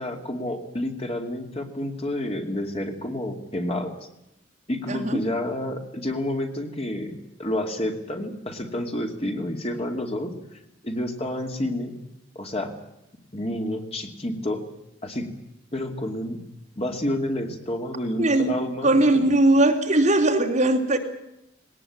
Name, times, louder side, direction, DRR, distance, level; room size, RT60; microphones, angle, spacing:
voice 1, 0.0-4.0 4.7-12.0 12.3-12.7 13.3-14.6 15.0-15.3 15.7-16.4 16.8-18.9, left 1 dB, 35° left, 4 dB, 2.6 m, -29 dB
voice 2, 4.9-5.2 18.2-18.5 18.8-21.0, right 2 dB, 40° right, 2 dB, 2.9 m, -19 dB
20.0 x 19.0 x 8.7 m, 0.85 s
head